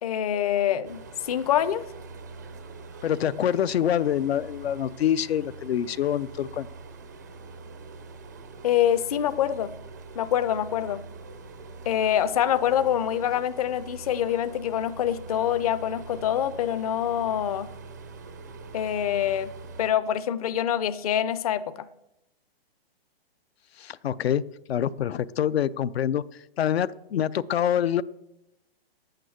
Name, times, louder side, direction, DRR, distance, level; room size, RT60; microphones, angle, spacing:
voice 1, 0.0-1.8 8.6-9.7 10.2-11.0 11.9-17.7 18.7-19.5 19.8-21.9, left 10 dB, 40° left, 13 dB, 0.6 m, -25 dB
sound 1, 0.8-19.9, right 4 dB, 20° right, 0.4 m, -43 dB
voice 2, 3.0-6.7 23.8-26.2 26.6-28.0, left 10 dB, 80° left, 17 dB, 0.6 m, -26 dB
11.5 x 9.0 x 7.8 m, 0.89 s
hypercardioid pair, 170°, 30 cm